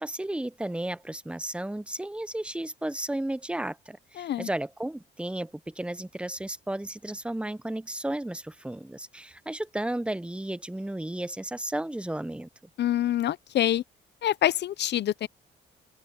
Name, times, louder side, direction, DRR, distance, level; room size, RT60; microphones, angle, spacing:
voice 1, 0.0-12.5, right 1 dB, 5° right, 0.8 m, -33 dB
voice 2, 4.2-4.5 12.8-13.8 14.2-15.3, left 12 dB, 60° left, 0.7 m, -26 dB
open air
cardioid pair, 90°, 20 cm